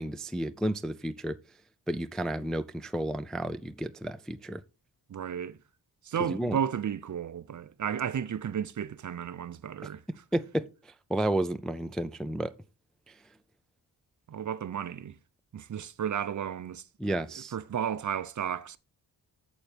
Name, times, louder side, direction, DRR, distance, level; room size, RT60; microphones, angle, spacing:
voice 1, 0.0-1.4 1.9-4.6 6.2-6.6 10.1-12.5 17.0-17.5, right 1 dB, ahead, 0.3 m, -32 dB
voice 2, 5.1-5.6 6.0-10.0 14.3-15.2 15.5-17.2 17.5-18.8, right 8 dB, 45° right, 0.5 m, -33 dB
8.8 x 7.1 x 3.3 m
wide cardioid pair, 115°, 41 cm